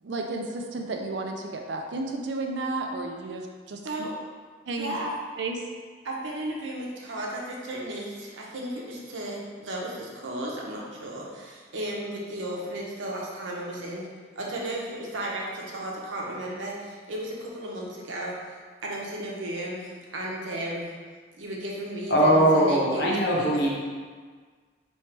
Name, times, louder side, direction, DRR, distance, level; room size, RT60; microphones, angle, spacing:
voice 1, 0.0-4.0 4.7-4.9 5.4-5.6, right 3 dB, 70° right, 2 dB, 0.4 m, -32 dB
voice 2, 4.7-5.1 6.0-14.1 14.4-20.9 21.4-23.7, right 1 dB, 85° right, -3 dB, 0.8 m, -34 dB
voice 3, 22.1-23.7, equal, 60° left, -4 dB, 0.9 m, -20 dB
3.3 x 3.1 x 4.4 m, 1.5 s
head